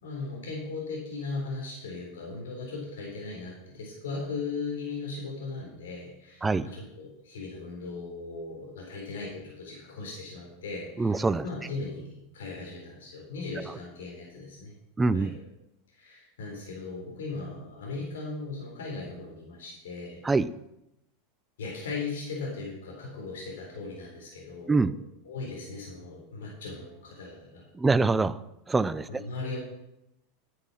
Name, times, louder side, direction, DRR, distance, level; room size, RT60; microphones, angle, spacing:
voice 1, 0.0-14.7 15.1-15.4 15.9-20.2 21.6-24.9 25.2-27.7 29.1-29.6, left 3 dB, 85° left, -2 dB, 4.1 m, -38 dB
voice 2, 11.0-11.5 15.0-15.4 20.2-20.5 24.7-24.9 27.7-28.4 28.7-29.2, right 3 dB, 15° right, 15 dB, 0.6 m, -24 dB
9.9 x 7.7 x 6.3 m, 0.85 s
hypercardioid pair, 105°, 0 cm